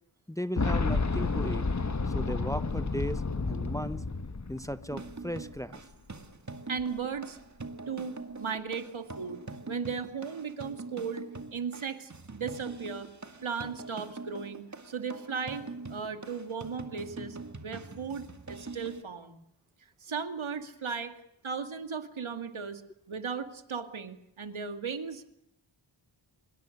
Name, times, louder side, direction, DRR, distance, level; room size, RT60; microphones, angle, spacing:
voice 1, 0.3-1.7 2.1-4.0 4.5-5.8, equal, 5° left, 13 dB, 0.9 m, -36 dB
Boom, 0.6-5.3 5.6-5.7 6.8-6.9, left 3 dB, 35° left, 1.5 m, -30 dB
sound 1, 4.9-19.0, right 3 dB, 35° right, 2.3 m, -43 dB
voice 2, 6.7-7.4 7.9-9.4 9.7-11.3 11.5-13.1 13.4-19.4 20.0-21.1 21.4-22.8 23.1-25.3, right 6 dB, 80° right, 8 dB, 2.3 m, -36 dB
25.5 x 22.0 x 6.6 m, 0.78 s
wide cardioid pair, 85°, 48 cm